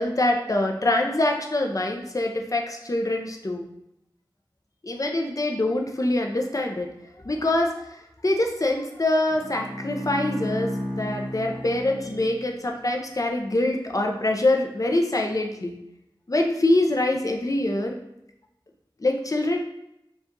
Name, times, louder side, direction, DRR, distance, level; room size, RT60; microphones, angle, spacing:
voice 1, 0.0-3.6 4.8-6.9 7.2-7.8 8.2-15.8 16.3-17.9 19.0-19.6, left 1 dB, 40° left, 2 dB, 0.5 m, -24 dB
Bowed string instrument, 9.3-12.8, equal, 5° right, 0.7 m, -33 dB
4.5 x 2.4 x 2.6 m, 0.85 s
wide cardioid pair, 45°, 9 cm